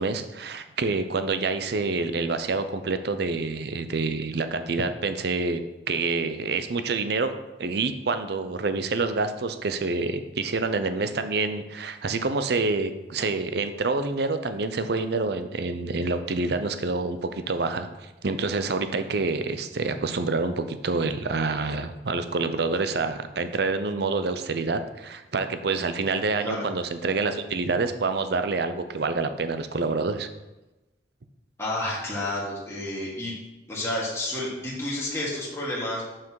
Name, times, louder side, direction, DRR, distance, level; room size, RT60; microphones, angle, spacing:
voice 1, 0.0-5.6 5.9-7.3 7.6-30.3, right 3 dB, 60° right, 9 dB, 0.6 m, -27 dB
voice 2, 31.6-33.3 33.7-36.0, left 1 dB, 15° left, -7 dB, 1.8 m, -30 dB
7.1 x 5.9 x 4.7 m, 1.0 s
head